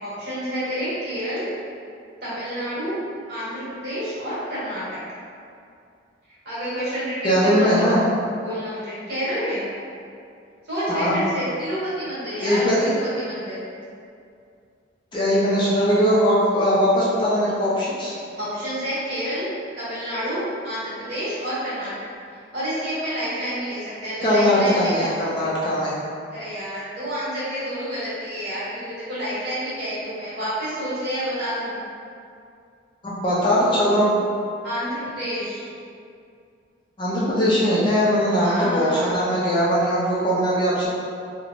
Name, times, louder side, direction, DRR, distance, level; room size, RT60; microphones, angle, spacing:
voice 1, 0.0-1.4 2.2-3.0 3.3-5.0 6.3-8.0 8.4-9.6 10.6-13.6 18.3-21.9 22.5-25.1 26.3-31.8 34.6-35.7 38.3-39.4, equal, 55° right, -12 dB, 1.3 m, -29 dB
voice 2, 7.2-8.0 10.9-11.2 12.4-12.9 15.1-18.1 24.2-25.9 33.0-34.1 37.0-40.9, equal, 25° left, -8 dB, 0.4 m, -20 dB
3.0 x 2.0 x 2.4 m, 2.4 s
head